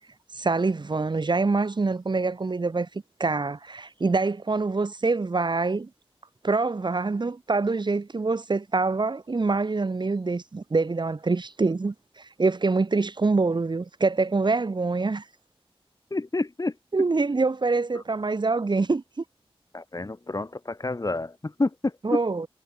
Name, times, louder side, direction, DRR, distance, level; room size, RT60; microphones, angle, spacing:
voice 1, 0.3-2.9 3.2-5.9 6.4-15.2 16.9-19.2 22.0-22.5, right 3 dB, 50° right, 1.4 m, -25 dB
voice 2, 16.1-16.8 17.9-18.0 19.7-22.2, left 2 dB, 35° left, 2.2 m, -29 dB
wide cardioid pair, 75°, 10 cm